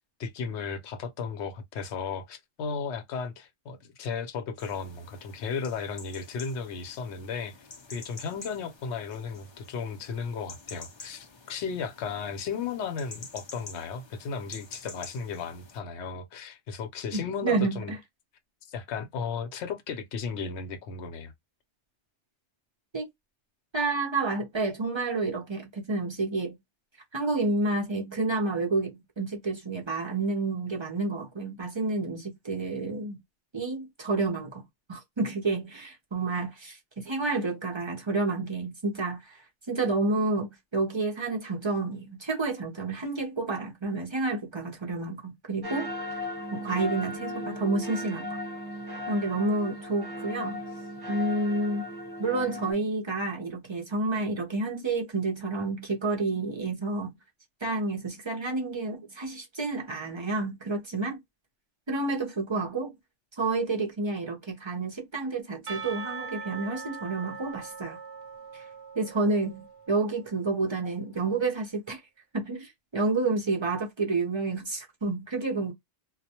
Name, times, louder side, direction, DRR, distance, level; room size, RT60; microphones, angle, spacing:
voice 1, 0.2-7.5 7.9-17.9 18.7-21.3, left 5 dB, 75° left, 0.9 m, -35 dB
sound 1, 4.6-15.8, left 3 dB, 40° left, 0.4 m, -48 dB
voice 2, 17.1-17.9 22.9-23.1 23.7-26.6 27.1-33.2 33.5-34.6 34.9-45.9 46.5-48.4 49.1-50.6 51.1-51.9 52.2-57.2 57.6-61.2 61.9-62.9 63.4-68.0 68.5-68.6 68.9-72.0 72.3-75.7, right 3 dB, 35° right, 0.4 m, -29 dB
sound 2, 45.6-52.7, left 1 dB, 20° right, 0.9 m, -36 dB
Percussion / Church bell, 65.7-70.2, right 5 dB, 65° right, 0.8 m, -41 dB
2.3 x 2.1 x 2.8 m
omnidirectional pair, 1.2 m